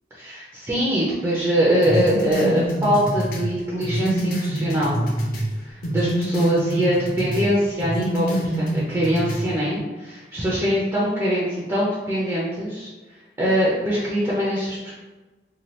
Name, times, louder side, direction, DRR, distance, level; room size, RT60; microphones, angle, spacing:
voice 1, 0.1-5.0 5.6-8.3 8.5-12.9 13.4-15.0, equal, 15° right, -7 dB, 0.4 m, -23 dB
sound 1, 1.8-5.5 5.8-7.5 7.8-9.5, right 1 dB, 50° left, 0.5 m, -25 dB
2.8 x 2.2 x 3.0 m, 1.2 s
head